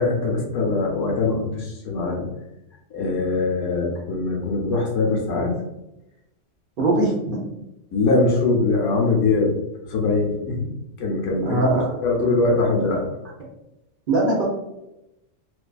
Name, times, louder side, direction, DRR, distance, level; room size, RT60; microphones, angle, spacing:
voice 1, 0.0-2.3 2.9-5.5 7.9-9.6 9.9-10.7 11.0-13.0, left 3 dB, 75° left, -1 dB, 1.0 m, -22 dB
voice 2, 6.8-7.4 11.4-11.9 14.1-14.5, right 2 dB, 55° right, -4 dB, 0.6 m, -21 dB
2.6 x 2.3 x 2.2 m, 0.90 s
omnidirectional pair, 1.3 m